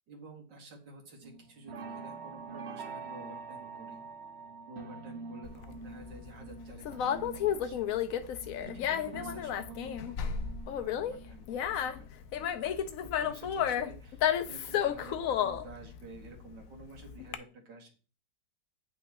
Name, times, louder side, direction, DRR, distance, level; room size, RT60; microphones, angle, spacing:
voice 1, 0.1-4.0 4.7-8.1 8.6-12.1 12.4-17.9, right 2 dB, 85° right, 1 dB, 2.5 m, -51 dB
sound 1, 1.2-13.4 13.7-15.3 15.7-16.1 16.4-16.5, right 4 dB, 65° right, 0.6 m, -47 dB
Conversation, 5.4-17.3, left 9 dB, 65° left, 0.9 m, -32 dB
9.2 x 5.9 x 3.1 m, 0.36 s
omnidirectional pair, 1.9 m